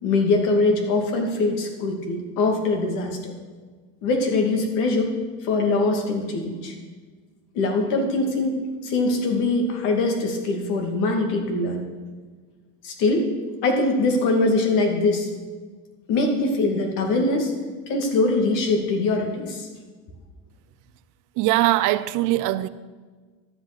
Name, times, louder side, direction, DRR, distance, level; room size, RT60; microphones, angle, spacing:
voice 1, 0.0-3.3 4.0-5.1 5.4-6.7 7.5-8.5 8.8-11.8 12.8-13.3 13.6-15.3 16.1-17.5 17.9-19.7, left 2 dB, 70° left, 2.6 m, -22 dB
voice 2, 21.4-22.7, right 16 dB, 65° right, 0.6 m, -21 dB
12.0 x 8.1 x 6.1 m
supercardioid pair, 115°, 33 cm